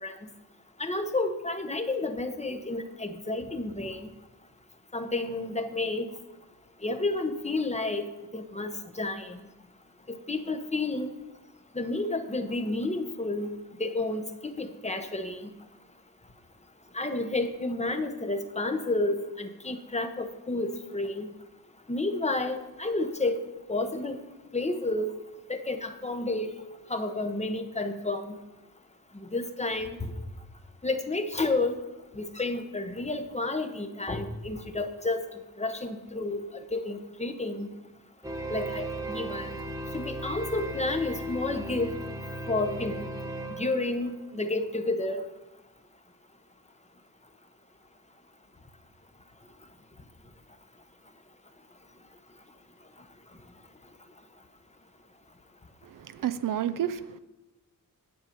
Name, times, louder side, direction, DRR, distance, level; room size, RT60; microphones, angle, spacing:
voice 1, 0.8-4.1 4.9-6.1 6.8-8.0 8.3-9.4 10.3-11.1 11.7-13.5 13.8-15.4 16.9-21.3 21.9-23.4 23.7-24.2 24.5-25.1 25.5-26.5 26.9-28.3 29.3-30.1 30.8-31.8 32.1-35.2 35.6-37.7 38.5-39.5 39.9-42.0 42.5-43.0 43.5-45.2, left 2 dB, 20° left, 1.0 m, -30 dB
sound 1, 38.2-44.6, right 1 dB, 10° right, 1.3 m, -36 dB
voice 2, 55.8-57.2, right 10 dB, 65° right, 0.5 m, -31 dB
10.5 x 8.3 x 5.3 m
wide cardioid pair, 115°, 36 cm